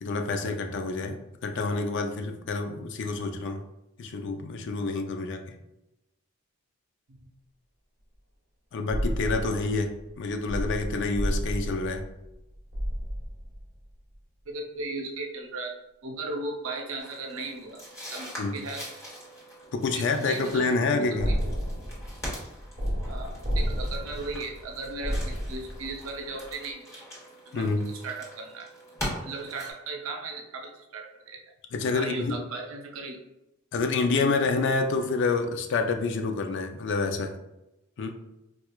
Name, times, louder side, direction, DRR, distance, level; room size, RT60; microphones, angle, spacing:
voice 1, 0.0-3.6 4.0-5.4 8.7-9.9 10.2-12.1 18.4-18.6 19.7-21.3 27.5-27.9 31.7-32.4 33.7-37.3 38.0-38.1, left 3 dB, 60° left, 6 dB, 0.4 m, -28 dB
sound 1, 8.9-13.9 21.2-26.1 26.4-26.5, equal, 35° right, 1.1 m, -31 dB
voice 2, 14.5-17.8 18.1-18.9 19.9-21.3 23.0-26.8 27.5-28.7 29.2-31.4 31.9-33.2, right 3 dB, 75° right, 2 dB, 0.6 m, -37 dB
sound 2, 17.0-29.7, equal, 15° left, 1.0 m, -42 dB
4.3 x 2.3 x 2.3 m, 0.91 s
head